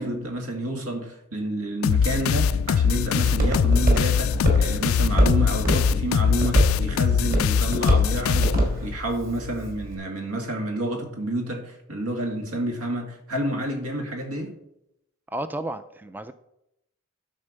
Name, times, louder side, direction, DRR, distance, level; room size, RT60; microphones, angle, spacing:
voice 1, 0.0-14.5, right 1 dB, 85° right, 2.0 m, -29 dB
sound 1, 1.8-9.0, left 7 dB, 65° left, 0.3 m, -22 dB
Walk footsteps, 2.0-10.0, equal, 45° right, 2.7 m, -25 dB
voice 2, 15.3-16.3, right 1 dB, 10° right, 0.3 m, -32 dB
12.5 x 4.4 x 6.6 m
head